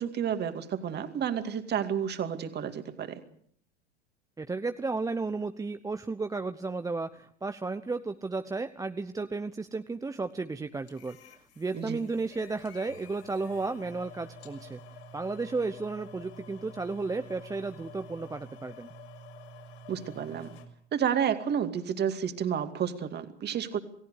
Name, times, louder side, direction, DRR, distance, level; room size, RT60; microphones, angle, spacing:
voice 1, 0.0-3.2 11.7-12.0 19.9-20.5 20.9-23.8, right 8 dB, 30° right, 8 dB, 2.5 m, -31 dB
voice 2, 4.4-14.8 15.1-18.9, right 3 dB, 10° right, 9 dB, 0.9 m, -33 dB
sound 1, 10.9-20.7, left 1 dB, 70° left, 6.3 m, -49 dB
28.5 x 18.0 x 6.7 m, 0.63 s
figure-of-eight pair, 85°, 34 cm